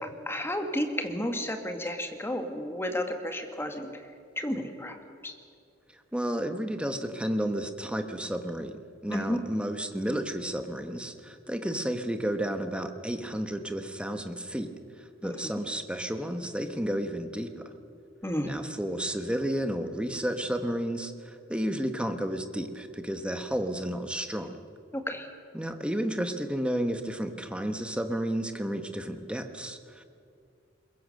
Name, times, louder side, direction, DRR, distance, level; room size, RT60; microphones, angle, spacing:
voice 1, 0.0-4.0 4.4-5.0 5.2-5.3 9.1-9.4 15.2-15.3 18.2-18.5 24.9-25.3, left 1 dB, 10° left, 5 dB, 1.9 m, -32 dB
voice 2, 6.1-8.8 9.0-14.7 15.0-17.6 18.4-24.6 25.5-30.0, right 1 dB, 5° right, 7 dB, 1.3 m, -32 dB
22.5 x 21.5 x 6.6 m, 2.4 s
head